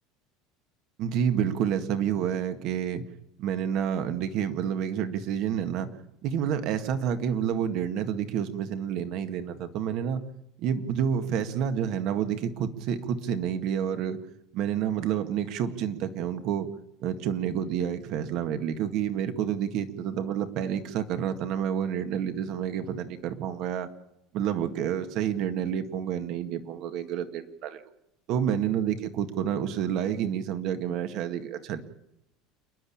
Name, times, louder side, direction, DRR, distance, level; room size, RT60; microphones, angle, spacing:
voice 1, 1.0-3.0 3.4-5.9 6.2-10.2 10.6-14.2 14.5-16.7 17.0-23.9 24.3-27.8 28.3-31.8, right 9 dB, 50° right, 9 dB, 1.8 m, -29 dB
28.5 x 10.5 x 8.6 m, 0.84 s
cardioid pair, 145°, 0 cm